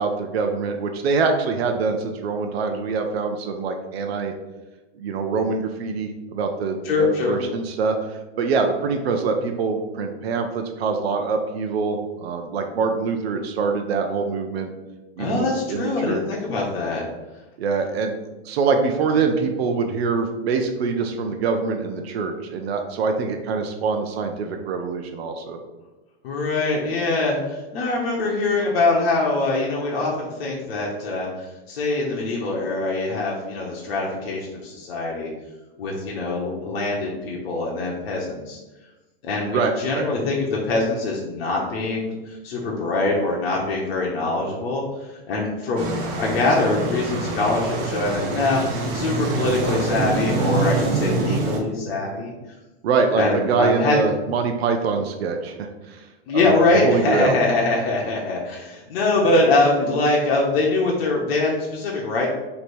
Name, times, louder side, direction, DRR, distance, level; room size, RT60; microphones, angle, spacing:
voice 1, 0.0-4.3 5.0-14.7 15.2-16.2 17.6-18.2 18.5-25.6 39.5-40.0 52.8-56.1 56.3-56.5 56.8-57.4, right 4 dB, 80° right, 4 dB, 0.6 m, -24 dB
voice 2, 6.8-7.4 15.2-17.0 26.2-35.3 35.8-38.6 39.2-52.3 53.1-54.0 56.3-62.3, left 2 dB, 75° left, -3 dB, 1.0 m, -23 dB
sound 1, 45.8-51.6, right 3 dB, 35° right, 0.7 m, -25 dB
3.3 x 2.8 x 4.3 m, 1.1 s
supercardioid pair, 165°, 31 cm